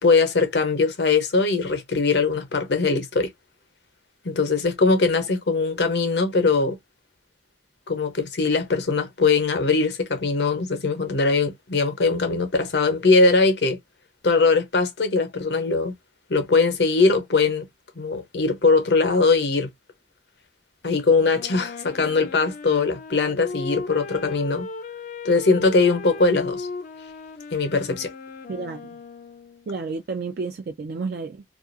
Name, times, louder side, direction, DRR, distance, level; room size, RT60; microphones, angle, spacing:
voice 1, 0.0-3.3 4.2-6.8 7.9-13.8 14.2-15.9 16.3-17.7 18.0-19.7 20.8-24.7 25.2-26.7 27.5-28.1, left 4 dB, 70° left, 0.8 m, -21 dB
Wind instrument woodwind instrument, 21.3-29.7, left 3 dB, 45° left, 0.4 m, -37 dB
voice 2, 28.5-29.0 29.7-31.4, right 4 dB, 60° right, 0.4 m, -31 dB
2.4 x 2.4 x 2.5 m
head